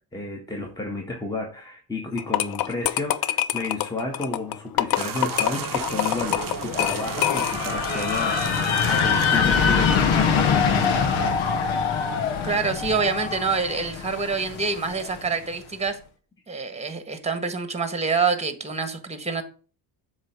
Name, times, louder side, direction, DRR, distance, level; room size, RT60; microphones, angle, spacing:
voice 1, 0.1-11.0, left 2 dB, 10° left, 1.3 m, -32 dB
sound 1, 2.2-7.8, left 12 dB, 50° left, 0.6 m, -26 dB
sound 2, 5.0-11.3, right 10 dB, 45° right, 0.7 m, -35 dB
sound 3, 5.5-15.3, left 6 dB, 80° left, 1.1 m, -24 dB
voice 2, 12.4-16.0 16.5-19.4, right 4 dB, 15° right, 1.3 m, -26 dB
7.4 x 3.2 x 6.1 m
cardioid pair, 80°, 47 cm